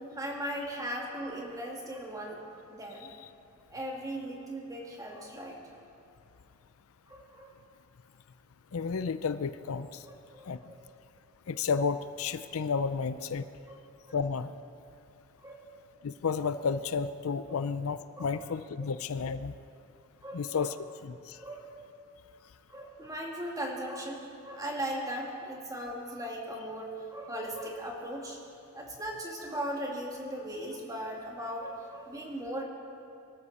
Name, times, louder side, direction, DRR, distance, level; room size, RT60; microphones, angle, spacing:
voice 1, 0.0-3.1 3.7-5.6 7.1-7.5 10.0-10.8 13.6-13.8 14.0-14.2 15.4-15.7 17.5-17.6 18.2-18.3 20.2-20.7 21.4-21.7 22.7-28.4 28.7-32.6, right 1 dB, 15° right, -1 dB, 2.4 m, -38 dB
voice 2, 8.7-10.0 10.5-10.6 11.5-13.4 14.1-14.5 16.0-19.5 20.3-20.8 21.0-21.4, left 5 dB, 70° left, 12 dB, 0.5 m, -32 dB
24.0 x 13.0 x 4.3 m, 2.7 s
head